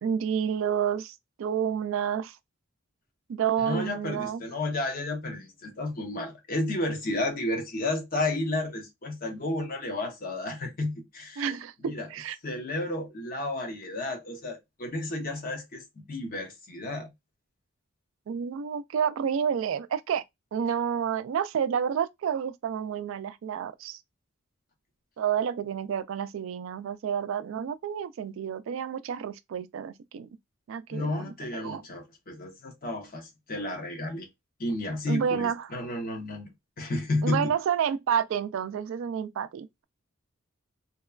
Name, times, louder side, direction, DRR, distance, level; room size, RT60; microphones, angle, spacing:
voice 1, 0.0-2.4 3.3-4.4 11.4-12.4 18.3-20.2 20.5-24.0 25.2-30.3 30.7-31.8 35.1-35.7 37.2-39.8, right 8 dB, 75° right, 0.3 m, -30 dB
voice 2, 3.6-11.5 11.9-12.1 12.4-15.8 16.1-17.1 30.9-34.3 34.6-36.5 36.8-37.5, left 2 dB, 45° left, 0.7 m, -32 dB
2.8 x 2.3 x 2.3 m
head